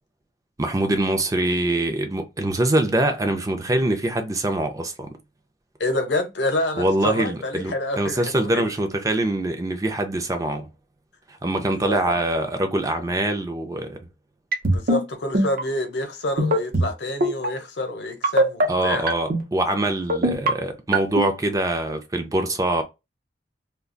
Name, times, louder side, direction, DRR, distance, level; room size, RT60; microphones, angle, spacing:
voice 1, 0.6-5.1 6.8-10.7 11.4-14.0 18.7-22.8, right 1 dB, 20° right, 0.5 m, -24 dB
voice 2, 5.8-8.6 11.7-12.2 14.7-19.1, left 1 dB, 75° left, 0.8 m, -27 dB
sound 1, 14.5-15.0 15.3-15.6 16.4-16.9 17.2-17.5 18.2-18.7 19.1-19.4 20.1-20.5 20.9-21.3, right 2 dB, 55° right, 0.7 m, -19 dB
2.3 x 2.2 x 3.7 m
head